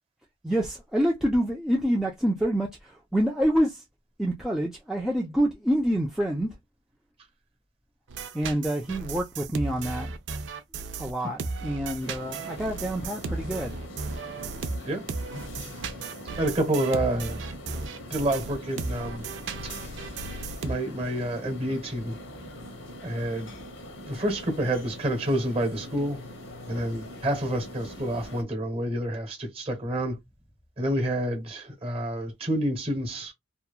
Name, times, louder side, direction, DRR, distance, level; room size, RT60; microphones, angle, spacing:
voice 1, 0.4-3.8 4.2-6.5 8.3-10.1 11.0-13.8, equal, ahead, 0.3 m, -27 dB
sound 1, 8.1-20.7, right 4 dB, 70° right, 0.4 m, -35 dB
sound 2, 12.0-28.4, left 1 dB, 75° left, 1.0 m, -43 dB
voice 2, 16.4-17.8 18.1-19.2 20.6-22.2 23.0-23.5 24.0-26.2 26.7-30.2 30.8-33.3, right 1 dB, 30° right, 1.0 m, -28 dB
2.8 x 2.2 x 2.3 m
head